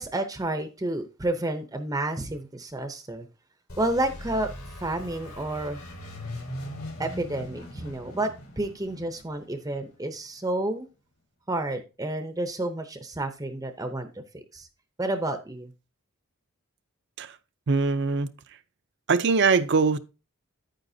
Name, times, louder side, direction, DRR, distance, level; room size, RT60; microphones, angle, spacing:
voice 1, 0.0-3.3 3.8-4.5 4.8-5.8 7.0-10.9 11.5-14.1 14.3-14.7 15.0-15.7, right 1 dB, 15° right, 0.6 m, -30 dB
sound 1, 3.7-10.3, left 1 dB, 80° left, 3.6 m, -40 dB
voice 2, 17.7-18.3 19.1-20.0, right 4 dB, 55° right, 0.6 m, -22 dB
9.2 x 9.1 x 2.7 m
head